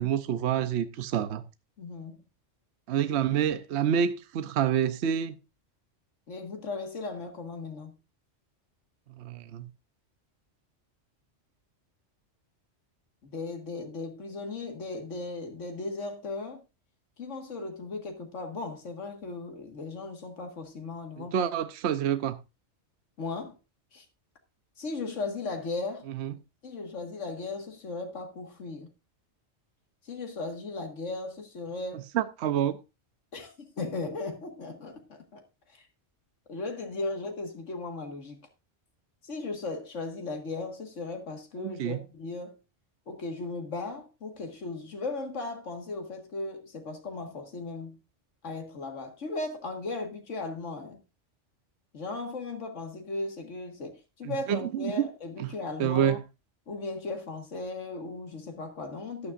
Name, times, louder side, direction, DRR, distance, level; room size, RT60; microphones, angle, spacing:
voice 1, 0.0-1.4 2.9-5.3 9.2-9.7 21.2-22.4 26.1-26.4 32.1-32.8 41.6-42.0 54.2-55.1 55.4-55.5 55.8-56.2, right 9 dB, 65° right, 0.9 m, -28 dB
voice 2, 1.8-2.2 6.3-8.0 13.2-16.6 17.2-21.5 23.2-23.6 23.9-24.1 24.8-26.1 26.6-28.9 30.0-32.1 33.3-35.4 35.7-35.9 36.5-38.4 39.2-42.6 43.1-48.0 48.4-51.0 51.9-56.2 56.7-59.3, left 3 dB, 85° left, 2.0 m, -37 dB
13.5 x 9.9 x 2.5 m
omnidirectional pair, 1.2 m